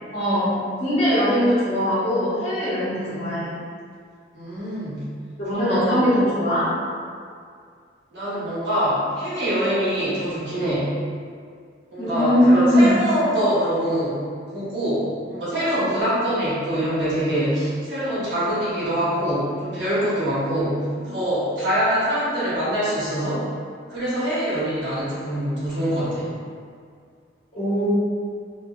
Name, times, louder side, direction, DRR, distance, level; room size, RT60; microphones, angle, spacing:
voice 1, 0.1-0.5 0.8-3.5 5.4-6.7 11.9-13.0 21.0-21.1 27.5-27.9, equal, 35° left, -12 dB, 1.1 m, -20 dB
voice 2, 2.9-3.2 4.3-5.0 5.5-6.0 8.1-10.9 11.9-14.2 14.5-23.4 23.9-26.3, equal, 70° right, -11 dB, 1.2 m, -24 dB
2.7 x 2.6 x 2.3 m, 2.2 s
head